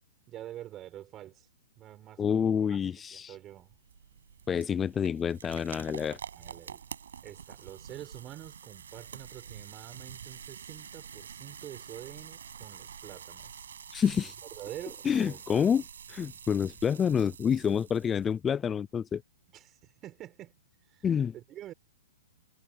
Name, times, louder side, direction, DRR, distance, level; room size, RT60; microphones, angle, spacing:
voice 1, 0.3-1.5 1.8-3.7 6.3-6.8 7.2-13.6 14.2-15.7 19.5-20.6 20.9-21.1 21.3-21.7, right 13 dB, 20° right, 6.1 m, -47 dB
voice 2, 2.2-3.4 4.5-6.2 13.9-14.3 15.0-15.8 16.1-19.2 21.0-21.3, left 7 dB, 15° left, 0.4 m, -28 dB
sound 1, 3.5-18.4, right 7 dB, 80° right, 6.3 m, -47 dB
hypercardioid pair, 150°, 0 cm